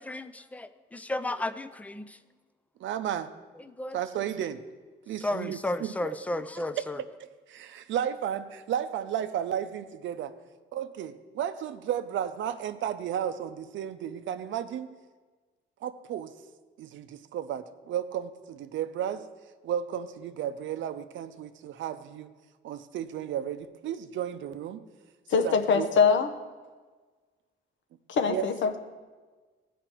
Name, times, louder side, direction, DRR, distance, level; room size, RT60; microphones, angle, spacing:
voice 1, 0.0-2.2 3.6-4.3 5.2-7.0, left 2 dB, 5° left, 12 dB, 0.4 m, -34 dB
voice 2, 2.8-3.3 3.9-4.6 5.1-6.4 7.5-10.3 10.7-14.9 15.8-16.3 16.8-19.2 19.6-22.3 22.6-24.8 25.3-25.9 28.3-28.4, right 10 dB, 70° right, 10 dB, 0.6 m, -33 dB
voice 3, 25.3-26.3 28.1-28.8, left 6 dB, 70° left, 7 dB, 0.8 m, -23 dB
14.5 x 5.0 x 4.5 m, 1.4 s
cardioid pair, 90°, 20 cm